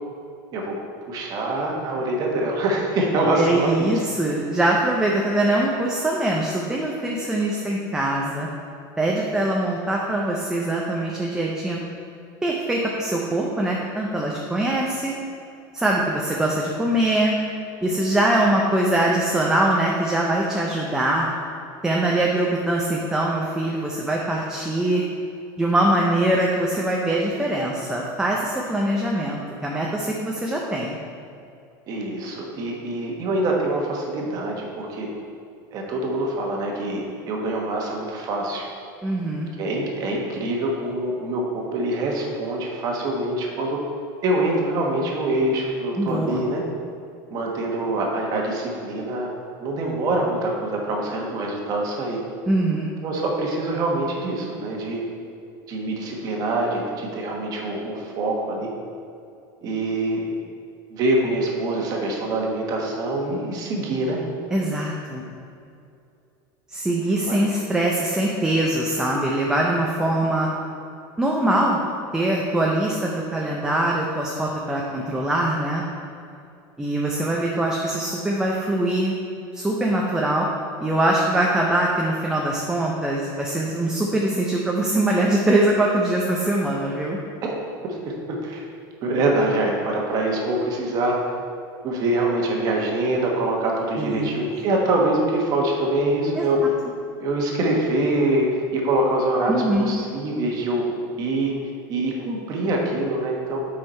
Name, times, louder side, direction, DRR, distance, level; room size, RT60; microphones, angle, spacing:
voice 1, 1.1-3.9 31.9-35.1 35.7-38.7 39.6-43.8 44.2-46.6 47.3-49.3 49.6-52.2 53.0-55.0 55.7-58.7 59.6-60.3 60.9-64.2 67.3-67.4 87.4-87.6 87.8-88.1 88.4-88.6 89.0-91.4 91.8-96.6 97.2-100.8 101.2-101.5 101.9-103.6, right 2 dB, 35° right, 0 dB, 1.3 m, -24 dB
voice 2, 3.4-8.5 9.0-11.8 12.4-15.1 15.7-17.4 17.8-21.3 21.8-25.0 25.6-31.0 39.0-39.5 46.0-46.4 52.5-52.9 64.5-65.3 66.7-70.5 71.2-71.8 72.1-75.8 76.8-79.1 79.5-80.5 80.8-87.2 94.0-94.3 96.4-96.5 99.5-99.9, right 1 dB, 5° right, -3 dB, 0.6 m, -23 dB
8.1 x 5.7 x 4.3 m, 2.5 s
cardioid pair, 165°, 11 cm